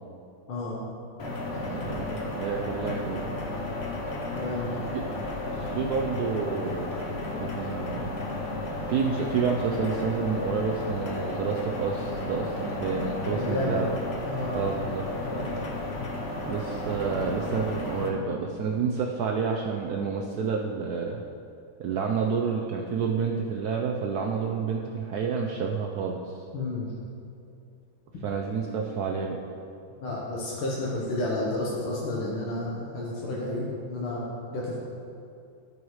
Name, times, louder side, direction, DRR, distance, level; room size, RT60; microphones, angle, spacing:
voice 1, 0.5-0.8 1.5-1.8 4.3-4.8 13.3-13.9 14.3-14.6 26.5-26.9 30.0-34.8, left 2 dB, 80° left, -5 dB, 2.0 m, -31 dB
sound 1, 1.2-18.1, left 2 dB, 55° left, 0.7 m, -33 dB
voice 2, 1.7-3.3 5.5-6.9 7.4-8.1 8.9-13.9 14.5-15.6 16.4-21.2 21.8-26.4 28.2-29.4, right 5 dB, 85° right, 1 dB, 0.8 m, -29 dB
14.0 x 5.5 x 3.2 m, 2.5 s
omnidirectional pair, 2.3 m